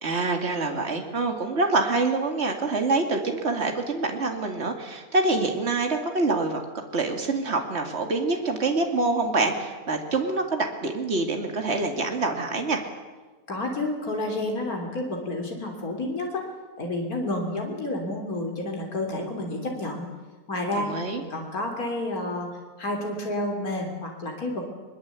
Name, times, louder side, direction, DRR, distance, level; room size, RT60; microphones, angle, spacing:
voice 1, 0.0-12.8 20.8-21.2, right 3 dB, 45° right, 4 dB, 2.7 m, -26 dB
voice 2, 13.5-16.5 16.8-20.1 20.5-20.9 21.3-22.5 22.8-24.6, left 2 dB, 75° left, 2 dB, 3.7 m, -30 dB
22.5 x 22.0 x 8.3 m, 1.3 s
omnidirectional pair, 1.6 m